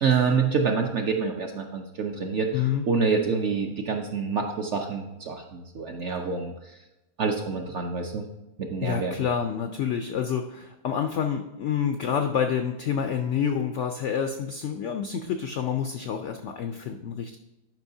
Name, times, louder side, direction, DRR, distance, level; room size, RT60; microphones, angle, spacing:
voice 1, 0.0-2.5 2.9-6.5 7.2-8.3 8.6-9.1, right 5 dB, 65° right, 3 dB, 0.7 m, -26 dB
voice 2, 2.5-2.8 8.8-17.4, left 8 dB, 85° left, 6 dB, 0.6 m, -28 dB
10.5 x 5.5 x 2.7 m, 0.99 s
omnidirectional pair, 1.8 m